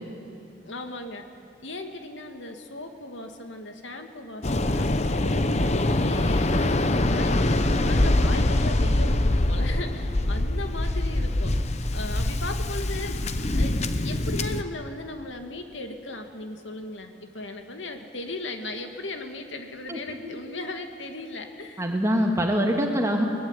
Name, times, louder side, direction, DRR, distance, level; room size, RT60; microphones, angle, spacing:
voice 1, 0.6-1.2 1.6-6.5 6.8-11.5 11.9-13.2 13.5-21.9, left 2 dB, 80° left, 5 dB, 2.4 m, -37 dB
Waves surf, 4.4-14.6, left 1 dB, 35° left, 0.9 m, -24 dB
voice 2, 19.9-20.4 21.8-23.2, equal, 15° right, 2 dB, 2.1 m, -24 dB
22.5 x 21.5 x 9.9 m, 2.8 s
head